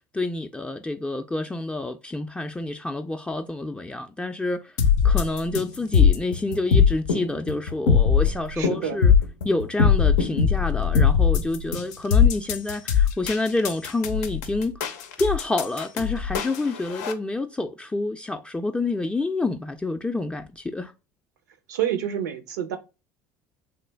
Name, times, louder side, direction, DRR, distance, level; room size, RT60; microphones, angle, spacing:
voice 1, 0.1-4.7 5.0-9.1 9.4-14.8 15.2-20.9, left 2 dB, 10° left, 0.4 m, -28 dB
sound 1, 4.8-17.1, left 7 dB, 85° left, 0.5 m, -20 dB
voice 2, 8.5-9.0 21.7-22.8, right 10 dB, 90° right, 0.6 m, -28 dB
3.2 x 2.1 x 3.3 m
hypercardioid pair, 75°, 9 cm